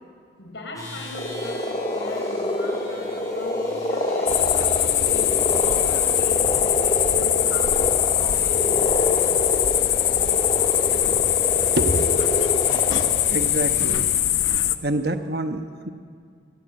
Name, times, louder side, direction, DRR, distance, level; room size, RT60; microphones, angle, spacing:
voice 1, 0.4-4.5 5.1-9.4, left 2 dB, 70° left, 2 dB, 5.4 m, -38 dB
sound 1, 0.7-14.2, left 1 dB, 20° left, 6.4 m, -44 dB
sound 2, 1.1-13.5, left 1 dB, 35° left, 2.0 m, -27 dB
sound 3, 4.3-14.8, left 12 dB, 90° left, 0.9 m, -22 dB
voice 2, 11.7-12.2 13.1-14.1 14.8-15.9, right 1 dB, 55° right, 7 dB, 1.3 m, -26 dB
25.0 x 18.0 x 7.8 m, 2.2 s
head